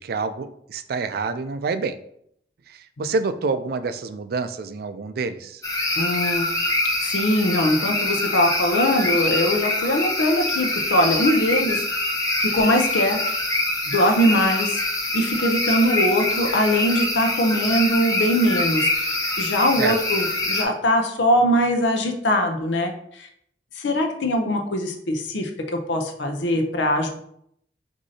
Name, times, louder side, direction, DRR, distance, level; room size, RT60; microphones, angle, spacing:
voice 1, 0.0-2.0 2.7-5.6 19.8-20.0, right 4 dB, 60° right, 11 dB, 0.3 m, -27 dB
sound 1, 5.6-20.6, left 2 dB, 20° left, 0.6 m, -25 dB
voice 2, 6.0-6.5 7.0-11.8 12.4-13.2 13.9-14.8 15.1-23.3 23.8-27.1, equal, 90° left, 4 dB, 0.6 m, -22 dB
6.2 x 2.7 x 2.7 m, 0.71 s
head